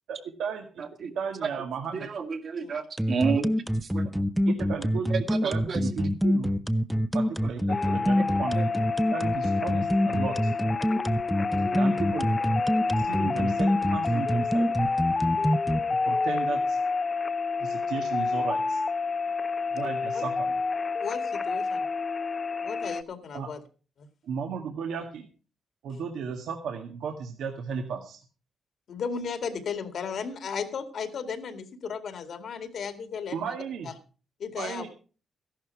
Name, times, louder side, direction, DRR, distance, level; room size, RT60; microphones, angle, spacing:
voice 1, 0.1-2.1 4.5-5.1 5.4-6.5 7.1-8.6 9.1-10.5 11.7-12.4 13.0-14.7 16.0-16.8 17.6-18.8 19.7-20.6 23.3-23.5 24.3-25.3 25.8-28.2 33.3-33.9 34.6-34.9, right 6 dB, 85° right, 3 dB, 1.8 m, -35 dB
voice 2, 1.9-3.5 3.9-4.1 5.1-5.8 8.6-8.7, right 5 dB, 50° right, 6 dB, 2.0 m, -30 dB
sound 1, 3.0-15.8, equal, 5° right, 0.7 m, -25 dB
sound 2, 7.7-23.0, left 4 dB, 30° left, 0.7 m, -29 dB
voice 3, 21.0-21.8 22.6-23.6 24.0-24.1 28.9-33.5 33.9-34.0 34.4-34.9, left 6 dB, 60° left, 8 dB, 2.2 m, -35 dB
14.5 x 11.5 x 4.6 m, 0.36 s
cardioid pair, 120°, 0 cm